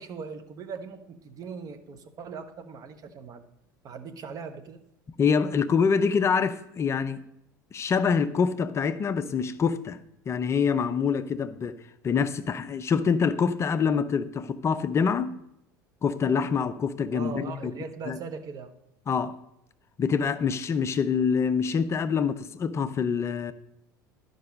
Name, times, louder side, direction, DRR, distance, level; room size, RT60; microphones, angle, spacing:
voice 1, 0.0-3.4 3.8-4.8 17.1-18.7, right 5 dB, 35° right, 1.0 m, -39 dB
voice 2, 5.2-7.2 7.7-10.0 10.3-15.4 16.0-17.7 18.1-18.2 19.1-19.4 20.0-23.5, left 6 dB, 25° left, 0.5 m, -25 dB
11.5 x 5.3 x 5.2 m
figure-of-eight pair, 70°, 11 cm